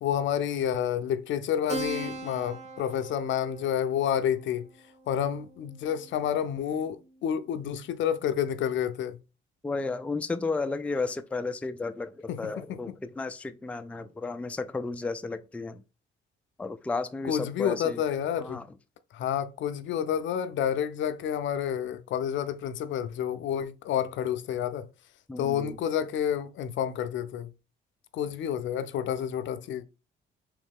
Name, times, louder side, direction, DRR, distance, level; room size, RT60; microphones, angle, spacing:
voice 1, 0.0-4.7 5.1-9.2 12.3-12.8 17.2-18.6 19.1-24.9 25.4-27.5 28.1-29.8, left 9 dB, 70° left, 0.5 m, -29 dB
Keyboard (musical), 1.7-6.7, right 2 dB, 30° right, 1.0 m, -40 dB
voice 2, 9.6-15.8 16.6-18.0 18.4-18.7 25.3-25.8, left 3 dB, 5° left, 0.3 m, -33 dB
3.7 x 3.1 x 3.6 m
cardioid pair, 90°, 20 cm